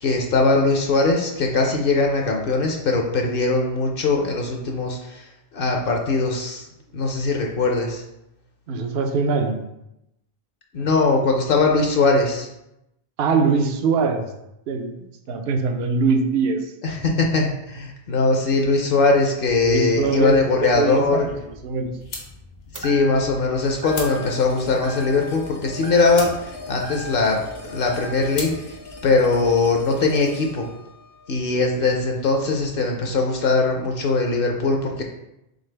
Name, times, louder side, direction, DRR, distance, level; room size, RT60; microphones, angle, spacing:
voice 1, 0.0-6.7 6.9-8.0 10.7-12.5 16.8-21.3 22.8-27.4 27.7-28.8 29.0-30.7 31.3-35.0, left 3 dB, 65° left, 2 dB, 0.8 m, -21 dB
voice 2, 8.7-9.7 13.2-14.3 14.7-16.7 19.6-22.0 31.8-32.0, right 4 dB, 75° right, 5 dB, 0.8 m, -23 dB
sound 1, 19.5-29.8, left 2 dB, 85° left, 1.2 m, -41 dB
sound 2, 22.7-23.5 23.8-24.5 24.8-25.5 25.8-27.5 27.8-28.4, right 2 dB, 25° right, 0.4 m, -37 dB
sound 3, 23.6-32.6, left 3 dB, 35° left, 0.5 m, -41 dB
3.9 x 3.7 x 3.2 m, 0.85 s
omnidirectional pair, 1.0 m